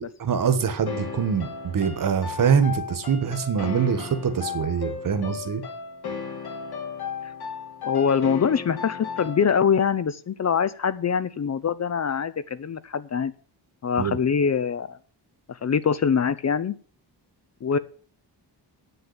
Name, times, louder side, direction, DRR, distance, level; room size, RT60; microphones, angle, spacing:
voice 1, 0.2-5.6 14.0-14.2, right 7 dB, 50° right, 11 dB, 1.4 m, -24 dB
sound 1, 0.9-9.7, left 6 dB, 65° left, 3.3 m, -35 dB
voice 2, 7.8-13.3 13.8-15.0 15.5-16.7 17.6-17.8, left 7 dB, 40° left, 15 dB, 0.6 m, -24 dB
8.9 x 6.8 x 8.6 m, 0.43 s
wide cardioid pair, 180°, 42 cm